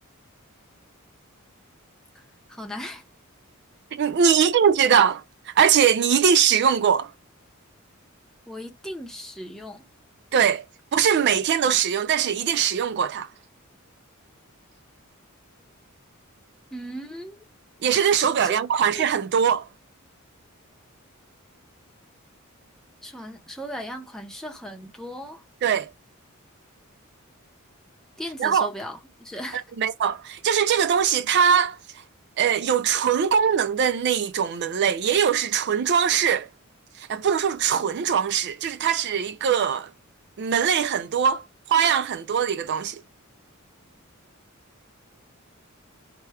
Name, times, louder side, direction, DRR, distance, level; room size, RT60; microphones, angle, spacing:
voice 1, 2.5-3.0 8.5-9.8 16.7-17.4 18.4-19.0 23.0-25.4 28.2-29.6, equal, ahead, 0.8 m, -37 dB
voice 2, 3.9-7.1 10.3-10.6 10.9-13.3 17.8-19.7 25.6-25.9 28.4-28.7 29.8-31.8 32.4-36.5 37.0-39.9 40.4-41.4 41.7-43.0, right 7 dB, 55° right, 0.4 m, -21 dB
4.5 x 2.2 x 4.7 m
head